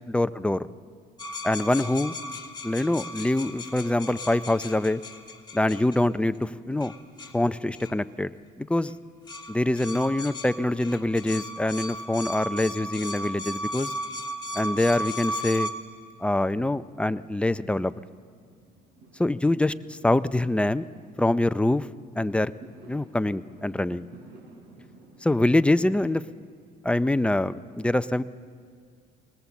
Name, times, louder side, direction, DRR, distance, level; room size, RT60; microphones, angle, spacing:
voice 1, 0.1-0.7 1.4-2.1 2.6-5.0 5.5-6.9 7.3-8.3 8.6-8.9 9.5-13.9 14.5-15.7 16.2-17.9 19.2-20.8 21.2-21.9 22.2-22.5 22.9-24.1 25.2-26.2 26.8-28.2, left 1 dB, 5° left, 14 dB, 0.4 m, -24 dB
sound 1, 1.2-6.0 6.8-7.4 7.8-8.0 8.9-9.0 9.3-15.7, equal, 25° left, 1.6 m, -35 dB
Fireworks, 14.1-26.1, right 2 dB, 85° right, 4.6 m, -55 dB
20.5 x 20.0 x 7.2 m, 2.1 s
cardioid pair, 110°, 17 cm